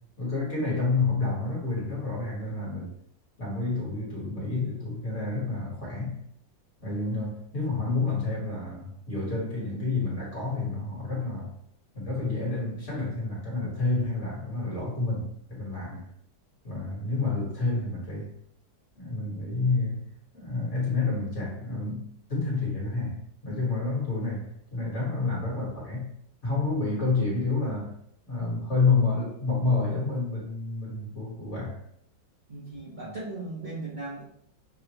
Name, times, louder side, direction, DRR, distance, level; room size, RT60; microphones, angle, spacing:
voice 1, 0.2-2.9 3.4-6.2 6.8-11.6 11.9-16.1 16.6-18.3 19.0-20.0 20.3-26.1 26.4-27.9 28.3-31.8, left 3 dB, 40° left, 1.7 m, -29 dB
voice 2, 32.5-34.2, right 2 dB, 30° right, 1.0 m, -37 dB
6.2 x 2.4 x 3.0 m
omnidirectional pair, 2.0 m